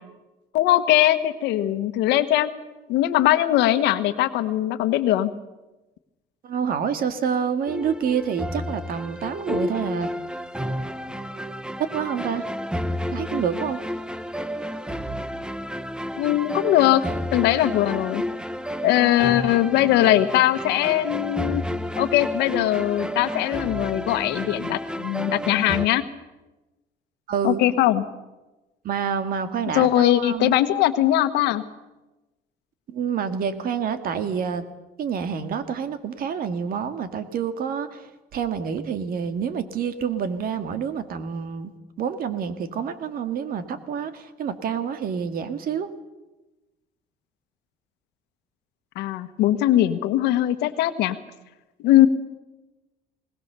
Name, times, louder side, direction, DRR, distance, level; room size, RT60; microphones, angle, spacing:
voice 1, 0.5-2.5 2.9-5.3 16.1-17.0 17.3-18.2 18.8-21.6 22.0-26.0 27.4-28.0 29.7-31.6 48.9-51.2 51.8-52.1, left 13 dB, 90° left, 11 dB, 1.3 m, -20 dB
voice 2, 6.4-10.1 11.8-12.5 13.1-13.8 27.3-27.6 28.8-30.5 32.9-34.7 35.0-41.7 42.0-45.9, right 7 dB, 60° right, 10 dB, 1.9 m, -28 dB
sound 1, 7.7-25.9, equal, 5° right, 0.9 m, -31 dB
20.5 x 19.0 x 6.8 m, 1.1 s
cardioid pair, 110°, 17 cm